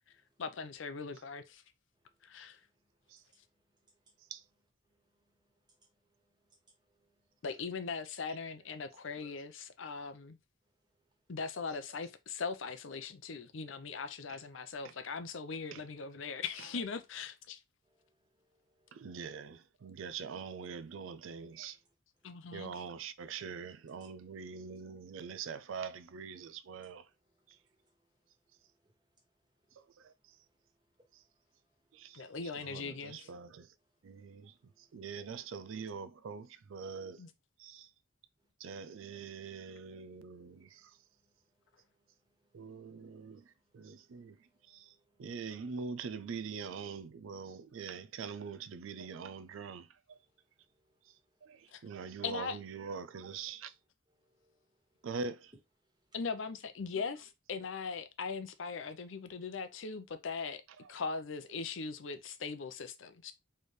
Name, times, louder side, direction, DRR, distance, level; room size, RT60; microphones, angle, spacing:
voice 1, 0.4-1.6 2.2-2.6 7.4-10.4 11.3-17.6 22.2-22.7 32.1-33.3 37.2-37.3 51.7-51.8 52.2-52.6 56.1-60.6 60.9-63.3, left 5 dB, 75° left, 0.6 m, -40 dB
voice 2, 6.1-6.6 6.9-7.2 10.1-10.2 17.8-19.1 27.8-27.9 28.8-28.9 32.0-32.1 34.6-35.0 40.0-40.1 40.5-41.3 41.8-41.9 42.5-43.1 43.8-45.3 50.7-51.0 51.7-51.9 54.2-55.1, right 1 dB, 20° right, 1.5 m, -77 dB
voice 3, 18.9-21.8 22.5-27.1 29.8-30.1 31.1-31.2 31.9-32.3 32.5-33.7 34.0-37.2 37.6-37.9 38.6-41.0 42.5-44.4 44.7-50.2 51.4-53.7 55.0-55.5 60.8-60.9, right 5 dB, 80° right, 0.4 m, -44 dB
4.4 x 3.3 x 3.1 m
head